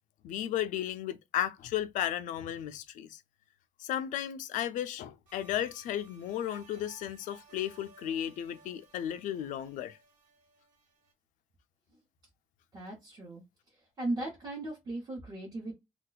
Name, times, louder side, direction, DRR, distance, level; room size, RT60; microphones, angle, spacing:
voice 1, 0.2-3.2 3.8-10.0, left 11 dB, 80° left, 0.4 m, -34 dB
sound 1, 5.3-11.1, right 5 dB, 80° right, 1.7 m, -59 dB
voice 2, 12.7-13.4 14.0-15.7, right 2 dB, 30° right, 0.8 m, -37 dB
2.4 x 2.2 x 3.9 m
cardioid pair, 180°, 13 cm